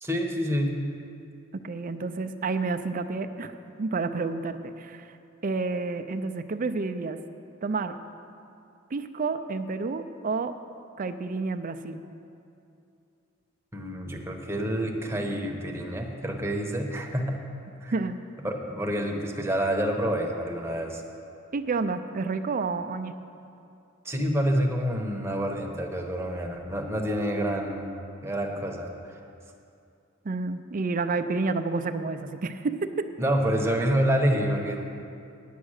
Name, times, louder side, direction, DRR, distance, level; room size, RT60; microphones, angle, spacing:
voice 1, 0.0-0.8 13.7-17.4 17.8-17.9 18.4-21.0 24.0-27.9 28.2-29.1 33.2-34.9, equal, 10° right, 1 dB, 1.0 m, -28 dB
voice 2, 1.5-3.5 3.8-5.2 5.4-7.2 7.6-7.9 8.9-10.5 11.0-12.0 17.9-18.2 21.5-23.2 30.2-33.1, right 3 dB, 40° right, 9 dB, 0.5 m, -30 dB
9.2 x 8.7 x 6.4 m, 2.6 s
head